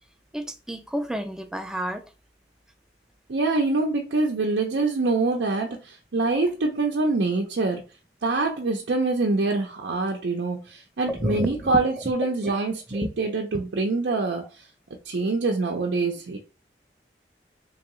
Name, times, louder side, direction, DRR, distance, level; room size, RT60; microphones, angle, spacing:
voice 1, 0.3-2.0 11.1-12.5 12.9-13.1, equal, 5° right, 0.3 m, -30 dB
voice 2, 3.3-7.8 8.2-14.7 15.1-16.4, right 3 dB, 80° right, 0.6 m, -25 dB
3.7 x 3.0 x 3.0 m
head